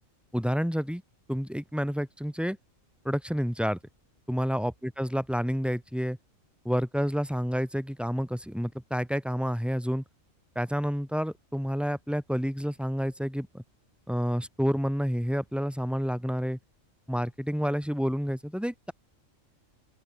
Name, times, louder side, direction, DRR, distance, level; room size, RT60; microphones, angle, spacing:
voice 1, 0.3-1.0 1.3-2.6 3.0-3.8 4.3-6.2 6.6-10.0 10.5-13.6 14.1-16.6 17.1-18.9, equal, ahead, 4.3 m, -29 dB
open air
omnidirectional pair, 1.4 m